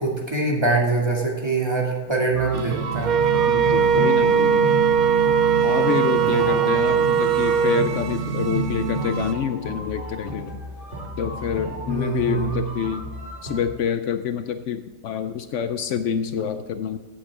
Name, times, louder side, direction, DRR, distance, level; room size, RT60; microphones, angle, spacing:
voice 1, 0.0-3.1 6.2-6.6 11.9-12.6, right 3 dB, 20° right, -2 dB, 2.4 m, -24 dB
sound 1, 2.3-13.7, equal, 45° right, 2.1 m, -35 dB
sound 2, 2.5-9.3, right 6 dB, 80° right, 1.2 m, -28 dB
Wind instrument woodwind instrument, 3.0-7.9, right 7 dB, 65° right, 0.4 m, -20 dB
voice 2, 3.5-4.7 5.6-10.6 11.2-13.0 13.4-17.0, left 8 dB, 70° left, 9 dB, 0.9 m, -27 dB
16.0 x 8.0 x 3.7 m, 1.3 s
omnidirectional pair, 1.3 m